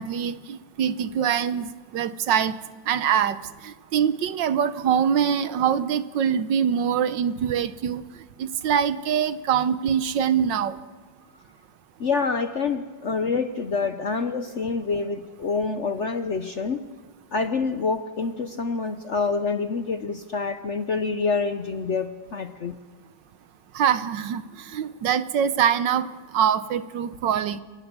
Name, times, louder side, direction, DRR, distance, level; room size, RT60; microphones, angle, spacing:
voice 1, 0.0-2.6 2.9-3.4 3.6-8.0 8.4-10.8 23.7-27.6, right 8 dB, 70° right, 14 dB, 1.5 m, -24 dB
voice 2, 12.0-16.9 17.3-22.8, left 4 dB, 55° left, 9 dB, 0.8 m, -27 dB
29.5 x 18.0 x 6.8 m, 1.5 s
omnidirectional pair, 2.1 m